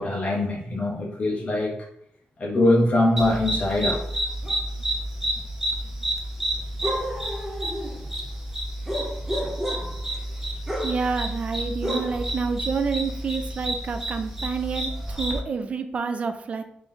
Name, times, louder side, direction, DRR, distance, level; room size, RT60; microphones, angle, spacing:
voice 1, 0.0-1.7 2.4-4.0, left 1 dB, 35° left, -3 dB, 0.6 m, -22 dB
sound 1, 3.2-15.4, right 1 dB, 10° right, 0.6 m, -29 dB
voice 2, 10.8-16.6, right 5 dB, 40° right, 8 dB, 0.3 m, -28 dB
3.3 x 2.6 x 3.7 m, 0.71 s
wide cardioid pair, 155°, 3 cm